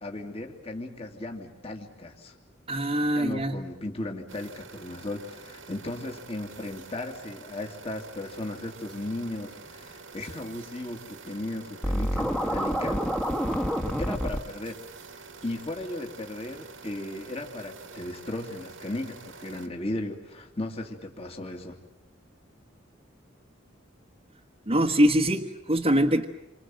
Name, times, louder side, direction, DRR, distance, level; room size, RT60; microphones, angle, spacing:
voice 1, 0.0-2.4 3.2-13.0 14.0-14.8 15.4-21.8, left 1 dB, 30° left, 2 dB, 2.6 m, -36 dB
voice 2, 2.7-3.6 24.7-26.2, equal, 30° right, 1 dB, 1.3 m, -23 dB
sound 1, 4.3-19.7, right 4 dB, 85° right, 2.5 m, -47 dB
Scratching (performance technique), 11.8-14.4, equal, 5° left, 1.5 m, -27 dB
28.5 x 26.0 x 7.7 m, 1.0 s
head